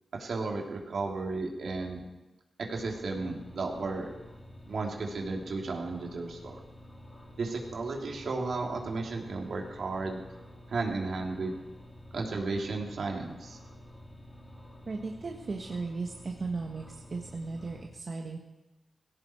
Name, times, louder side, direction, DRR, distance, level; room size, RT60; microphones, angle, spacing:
voice 1, 0.1-2.0 2.6-4.1 4.7-6.6 7.4-10.2 10.7-11.6 12.1-13.6, right 3 dB, 75° right, 0 dB, 3.1 m, -34 dB
sound 1, 2.7-17.9, left 1 dB, 15° left, 3.2 m, -50 dB
voice 2, 14.9-16.8 17.1-18.4, right 3 dB, 55° right, 0 dB, 1.6 m, -36 dB
18.0 x 16.5 x 4.6 m, 1.0 s
cardioid pair, 65°, 0 cm